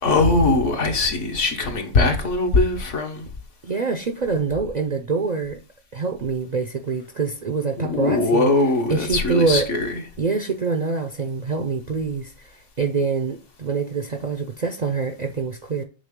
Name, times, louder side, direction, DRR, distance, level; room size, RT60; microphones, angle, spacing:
voice 1, 0.0-3.3 7.8-9.9, left 3 dB, 65° left, 1.5 m, -21 dB
voice 2, 3.6-5.6 5.9-8.5 8.9-9.7 10.2-15.8, right 4 dB, 50° right, 0.5 m, -25 dB
7.3 x 3.6 x 3.6 m
omnidirectional pair, 1.3 m